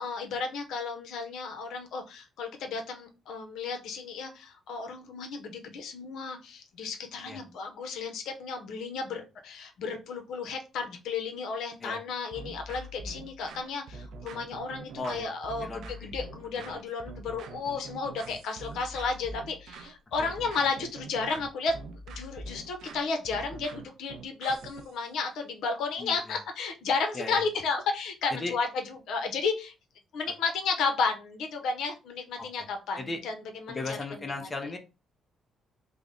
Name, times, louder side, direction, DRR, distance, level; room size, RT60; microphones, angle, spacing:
voice 1, 0.0-21.7 22.1-29.7 30.1-34.0, left 4 dB, 80° left, 5 dB, 0.6 m, -33 dB
sound 1, 12.3-25.0, right 2 dB, 75° right, 0.4 m, -44 dB
voice 2, 15.0-15.3 15.6-16.1 16.7-16.8 20.2-20.3 26.0-26.4 27.1-27.4 28.3-28.5 32.4-32.7 33.0-33.2 33.7-34.8, left 2 dB, 30° left, 5 dB, 0.7 m, -37 dB
3.4 x 2.0 x 3.6 m, 0.29 s
cardioid pair, 90°, 0 cm